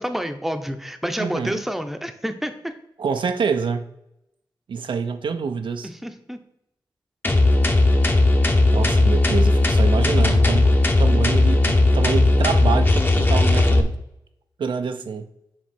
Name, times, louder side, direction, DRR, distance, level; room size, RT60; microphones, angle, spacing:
voice 1, 0.0-2.7 5.8-6.4, equal, 5° right, 0.7 m, -29 dB
voice 2, 1.2-1.6 3.0-3.9 4.7-5.9 8.7-14.0 14.6-15.3, right 5 dB, 70° right, 0.5 m, -26 dB
sound 1, 7.2-13.8, left 2 dB, 25° left, 0.8 m, -17 dB
7.4 x 3.1 x 4.4 m
cardioid pair, 55°, 9 cm